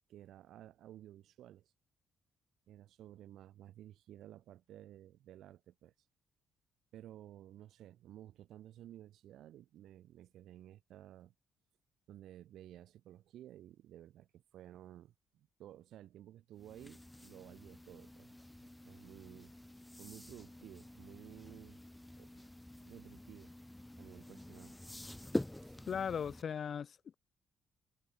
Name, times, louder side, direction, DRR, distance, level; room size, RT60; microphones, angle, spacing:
voice 1, 0.1-1.7 2.7-6.1 6.9-11.3 12.1-18.3 18.6-19.5 20.0-21.8 22.2-22.3 22.8-23.5 24.0-25.0 25.6-25.8, right 12 dB, 75° right, 4.2 m, -55 dB
sound 1, 16.6-26.4, left 1 dB, 5° left, 2.2 m, -46 dB
voice 2, 25.9-27.2, left 7 dB, 45° left, 0.8 m, -38 dB
cardioid pair, 130°, 0 cm